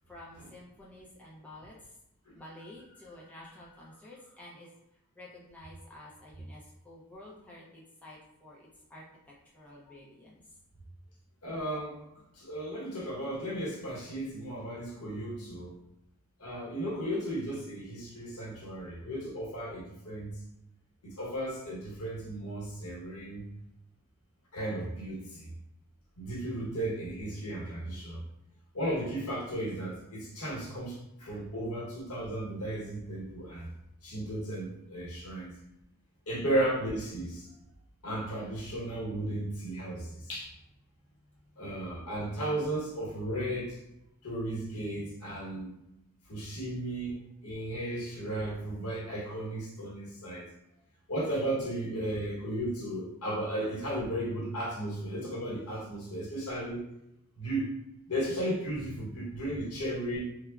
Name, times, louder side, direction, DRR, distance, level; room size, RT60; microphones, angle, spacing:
voice 1, 0.1-1.8 2.3-4.7 5.2-9.0 9.5-10.4, left 1 dB, 5° left, -6 dB, 0.4 m, -50 dB
voice 2, 11.4-12.0 12.3-15.8 16.4-20.4 21.0-23.4 24.5-25.5 26.2-28.2 28.7-33.7 34.0-35.5 36.3-37.5 38.0-40.5 41.6-43.8 44.2-45.7 46.3-50.5 51.1-56.9 57.4-57.7 58.1-60.2, right 1 dB, 80° left, -5 dB, 1.0 m, -35 dB
3.4 x 2.0 x 2.3 m, 0.86 s
head